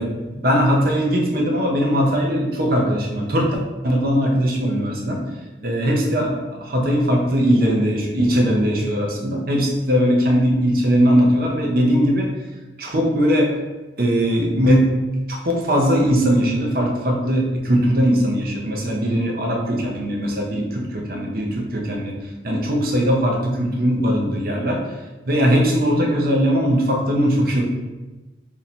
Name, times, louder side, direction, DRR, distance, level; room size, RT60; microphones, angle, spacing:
voice 1, 0.0-3.6 3.8-5.2 5.6-12.3 12.8-13.6 14.0-15.0 15.3-22.1 22.4-24.8 25.3-27.6, equal, 55° right, 0 dB, 0.7 m, -20 dB
3.1 x 2.8 x 4.1 m, 1.1 s
head